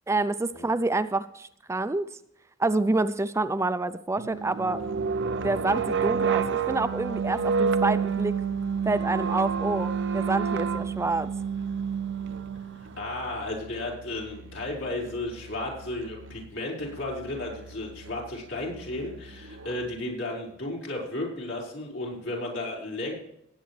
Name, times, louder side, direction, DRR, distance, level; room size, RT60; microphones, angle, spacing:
voice 1, 0.1-2.1 2.6-4.8 5.4-8.4 8.9-11.3, right 2 dB, 15° right, 12 dB, 0.4 m, -27 dB
sound 1, 4.2-12.9, right 6 dB, 65° right, 0.6 m, -28 dB
Musical instrument, 4.8-20.1, right 1 dB, 90° right, 1.1 m, -47 dB
voice 2, 12.8-23.2, left 2 dB, 80° left, -3 dB, 4.9 m, -34 dB
18.0 x 9.0 x 3.2 m, 0.77 s
head